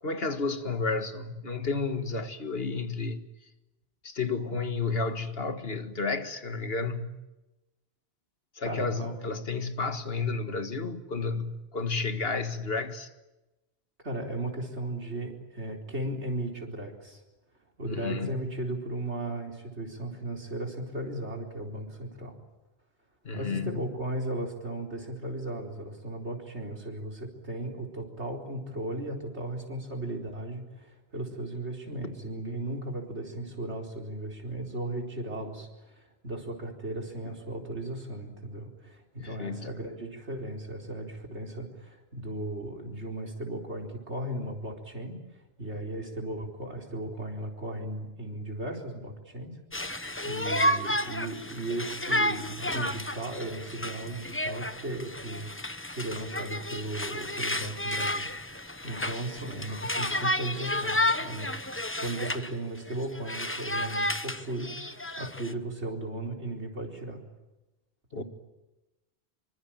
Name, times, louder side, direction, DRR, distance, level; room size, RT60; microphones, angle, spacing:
voice 1, 0.0-3.3 4.0-7.2 8.6-13.1 17.9-18.3 23.2-23.8 39.2-39.7 68.1-68.2, left 4 dB, 65° left, 2.0 m, -31 dB
voice 2, 8.6-9.1 14.0-17.2 17.8-22.4 23.3-61.5 62.0-67.2 68.2-68.3, right 1 dB, 85° right, 4.6 m, -36 dB
Conversation, 49.7-62.5 62.9-65.5, left 1 dB, 10° left, 1.0 m, -31 dB
26.5 x 24.5 x 9.0 m
omnidirectional pair, 1.1 m